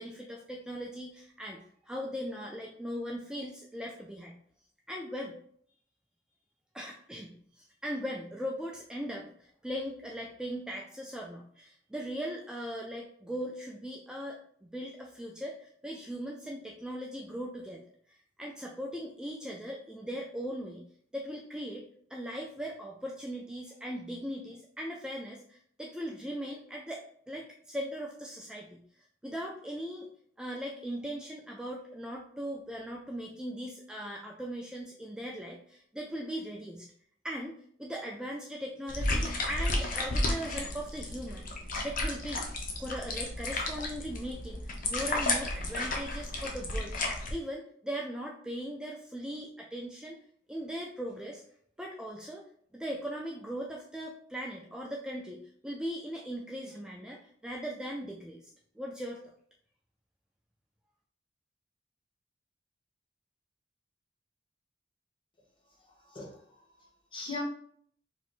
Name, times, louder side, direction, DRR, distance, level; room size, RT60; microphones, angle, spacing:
voice 1, 0.0-4.3 4.9-5.3 6.7-17.8 18.1-20.8 21.1-21.8 22.1-30.1 30.4-36.9 37.2-42.5 42.8-50.2 50.5-51.4 51.8-52.4 52.7-58.5 58.8-59.2, equal, 5° right, -2 dB, 0.3 m, -39 dB
sound 1, 38.9-47.3, left 2 dB, 50° left, 0.7 m, -33 dB
voice 2, 65.8-67.4, left 3 dB, 30° left, -2 dB, 1.0 m, -42 dB
4.5 x 3.2 x 2.5 m, 0.62 s
head